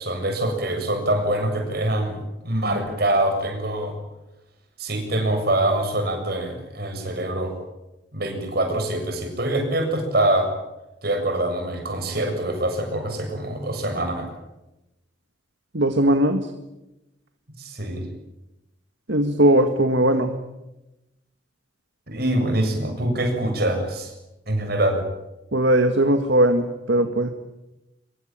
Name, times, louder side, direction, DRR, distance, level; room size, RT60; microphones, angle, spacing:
voice 1, 0.0-2.2 2.4-3.9 4.8-7.5 8.1-10.5 11.0-14.3 17.6-18.0 22.1-24.1 24.5-25.0, right 1 dB, 55° right, 5 dB, 7.4 m, -24 dB
voice 2, 15.7-16.5 19.1-20.3 25.5-27.3, right 1 dB, 70° right, 7 dB, 1.8 m, -19 dB
25.5 x 22.5 x 9.0 m, 0.96 s
head